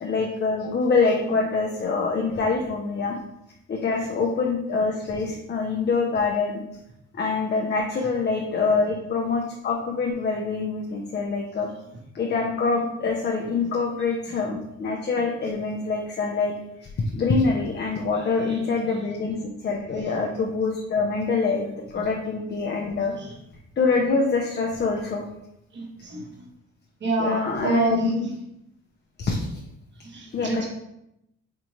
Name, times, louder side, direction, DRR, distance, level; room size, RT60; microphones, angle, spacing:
voice 1, 0.0-3.1 3.7-6.6 7.1-11.7 12.1-16.5 17.1-23.1 23.8-25.2 27.2-27.9 28.1-28.3 29.2-29.6 30.3-30.6, left 4 dB, 35° left, 0 dB, 0.6 m, -25 dB
voice 2, 18.1-19.0 20.1-20.2 22.0-22.1 23.2-23.3 25.7-26.5 27.0-28.3 30.0-30.6, right 3 dB, 35° right, -2 dB, 1.0 m, -29 dB
4.4 x 2.5 x 3.0 m, 0.82 s
cardioid pair, 90°, 30 cm